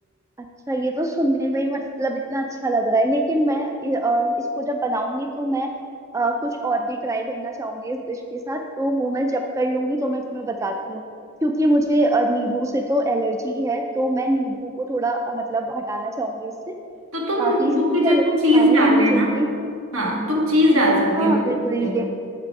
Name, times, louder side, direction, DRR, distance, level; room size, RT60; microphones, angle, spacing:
voice 1, 0.7-5.7 6.1-11.0 11.4-16.7 17.4-17.8 18.0-18.2 18.5-19.5 21.1-22.1, right 1 dB, 15° right, 3 dB, 0.3 m, -23 dB
voice 2, 17.1-19.3 19.9-21.4 21.8-22.0, equal, 75° right, -1 dB, 1.5 m, -19 dB
7.6 x 5.9 x 4.7 m, 2.5 s
head